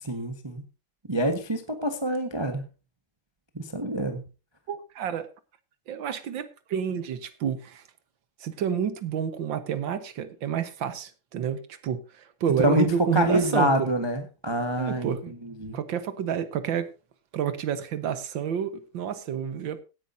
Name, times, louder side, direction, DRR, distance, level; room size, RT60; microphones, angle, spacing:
voice 1, 0.0-0.6 1.1-2.6 3.5-4.2 12.6-12.9 13.1-15.2 15.4-15.8, equal, 15° right, 1.1 m, -26 dB
voice 2, 4.7-5.3 5.9-7.8 8.4-13.9 14.8-15.3 15.7-16.9 17.3-19.8, right 8 dB, 65° right, 1.8 m, -29 dB
17.5 x 10.0 x 2.7 m
omnidirectional pair, 2.3 m